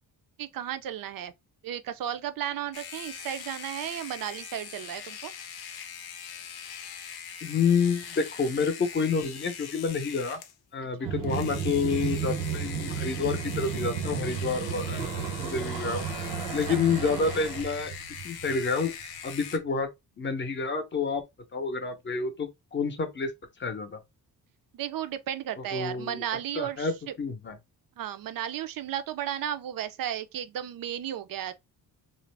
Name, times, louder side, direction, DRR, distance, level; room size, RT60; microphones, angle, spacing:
voice 1, 0.4-1.3 1.6-5.3 11.0-11.1 16.7-16.8 24.7-26.9 28.0-31.5, right 10 dB, 60° right, 0.5 m, -34 dB
Beard Trimmer Shaver, 2.7-10.6 11.2-19.6, left 8 dB, 70° left, 0.6 m, -42 dB
voice 2, 7.4-10.4 10.7-16.1 16.5-17.9 18.2-18.9 19.2-19.9 20.2-21.2 21.5-23.3 23.6-24.0 25.6-26.2 26.5-27.6, left 5 dB, 30° left, 0.6 m, -29 dB
sound 1, 11.0-19.2, right 7 dB, 85° right, 0.8 m, -33 dB
2.5 x 2.0 x 3.2 m
cardioid pair, 120°, 39 cm